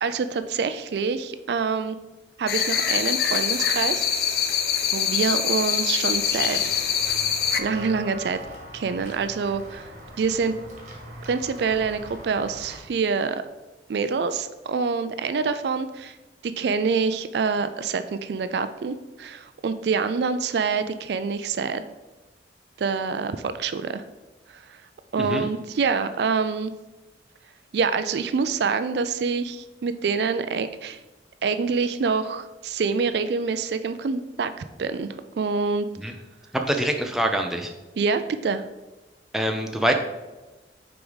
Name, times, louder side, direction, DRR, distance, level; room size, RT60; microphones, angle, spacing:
voice 1, 0.0-2.0 2.4-4.1 4.9-6.9 7.6-8.4 8.7-9.9 10.2-10.5 11.3-13.4 13.9-16.2 16.6-21.8 22.8-24.0 24.5-24.8 25.1-26.7 27.7-31.0 31.4-35.1 35.4-36.2 38.0-38.6, right 5 dB, 65° right, 11 dB, 0.4 m, -26 dB
sound 1, 2.5-7.6, left 8 dB, 60° left, 0.5 m, -24 dB
Walk footsteps / Bell, 6.1-12.8, equal, 40° right, 1.4 m, -41 dB
voice 2, 25.2-25.5 36.0-36.1 36.7-37.7 39.3-39.9, equal, ahead, 3 dB, 0.5 m, -24 dB
6.0 x 4.8 x 4.0 m, 1.1 s
head